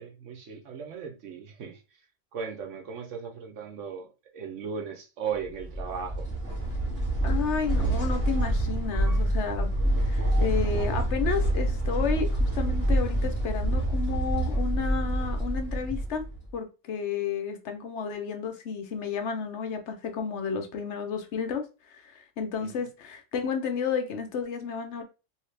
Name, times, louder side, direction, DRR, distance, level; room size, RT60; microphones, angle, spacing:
voice 1, 0.0-1.8 2.3-6.3 22.6-22.8, right 6 dB, 75° right, 1.2 m, -37 dB
sound 1, 5.5-16.5, right 1 dB, 10° right, 1.5 m, -27 dB
voice 2, 7.2-9.7 10.0-16.2 16.5-25.0, left 6 dB, 70° left, 0.9 m, -32 dB
3.2 x 2.8 x 3.2 m
omnidirectional pair, 1.3 m